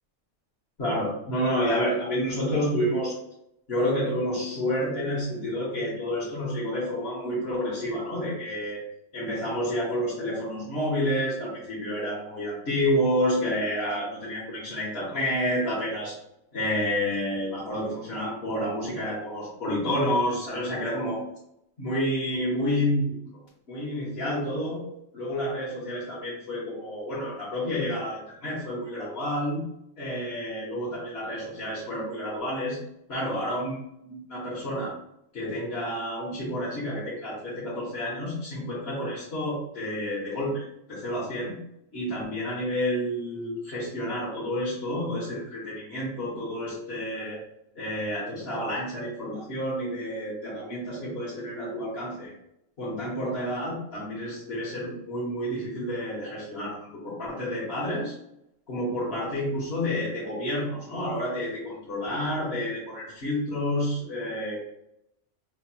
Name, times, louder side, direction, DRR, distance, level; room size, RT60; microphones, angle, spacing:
voice 1, 0.8-3.2 3.7-8.8 9.1-16.1 16.5-21.2 21.8-23.2 23.7-24.8 25.1-29.6 30.0-32.8 33.1-34.9 35.3-41.6 41.9-47.4 47.7-52.3 52.8-58.1 58.7-64.6, equal, 55° left, -8 dB, 1.2 m, -29 dB
4.5 x 2.8 x 2.2 m, 0.79 s
omnidirectional pair, 1.3 m